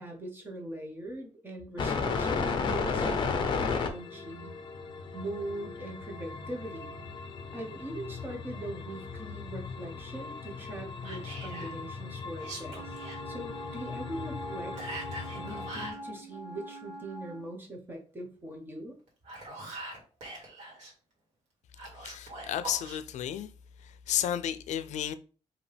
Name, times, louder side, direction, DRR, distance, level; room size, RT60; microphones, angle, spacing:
voice 1, 0.0-4.5 5.1-6.9 7.5-13.0 13.3-14.8 15.3-19.0, right 1 dB, 15° right, 1.0 m, -41 dB
sound 1, 1.8-15.9, left 5 dB, 40° left, 0.6 m, -35 dB
Whispering, 11.0-11.7 12.3-13.2 14.8-16.0 19.1-20.9 21.8-23.0, right 1 dB, 90° right, 1.9 m, -42 dB
Wind instrument woodwind instrument, 12.7-17.5, right 1 dB, ahead, 2.2 m, -44 dB
voice 2, 22.0-23.5 23.8-25.1, left 10 dB, 90° left, 0.4 m, -33 dB
5.1 x 2.8 x 3.4 m
wide cardioid pair, 175°, 12 cm